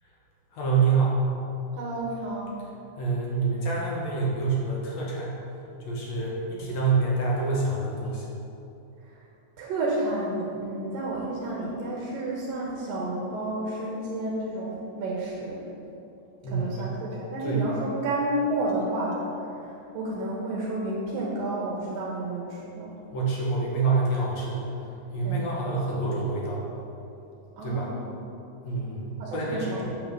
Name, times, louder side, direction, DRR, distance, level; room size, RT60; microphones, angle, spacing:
voice 1, 0.5-1.2 3.0-5.3 5.9-8.4 16.4-16.9 17.4-17.7 23.1-24.6 25.1-26.6 27.6-27.9 28.6-29.9, right 4 dB, 50° left, -4 dB, 2.4 m, -27 dB
voice 2, 1.8-2.6 9.6-15.7 16.5-19.2 19.4-22.9 25.2-25.4 27.6-28.0 29.2-29.9, right 1 dB, 70° right, -4 dB, 2.8 m, -31 dB
9.2 x 5.8 x 6.8 m, 2.8 s
omnidirectional pair, 4.4 m